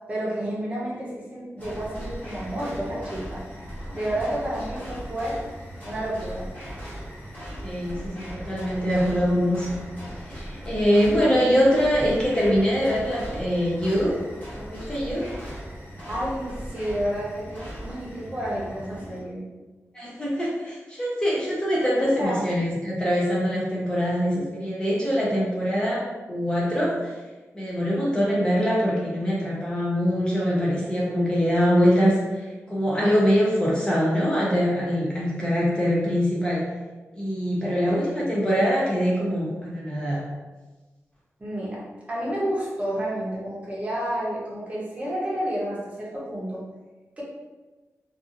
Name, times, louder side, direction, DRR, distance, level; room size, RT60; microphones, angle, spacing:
voice 1, 0.1-3.4 3.9-5.4 5.8-6.5 16.1-19.5 22.0-22.4 37.6-37.9 41.4-46.6 47.2-47.3, right 1 dB, 25° right, -5 dB, 0.7 m, -30 dB
sound 1, 1.6-19.2, equal, 30° left, 1.1 m, -38 dB
voice 2, 7.6-9.7 10.2-14.2 14.5-15.3 19.9-27.2 27.5-36.7 37.1-40.3, equal, 15° left, -6 dB, 0.5 m, -23 dB
2.7 x 2.4 x 2.5 m, 1.2 s
wide cardioid pair, 160°, 5 cm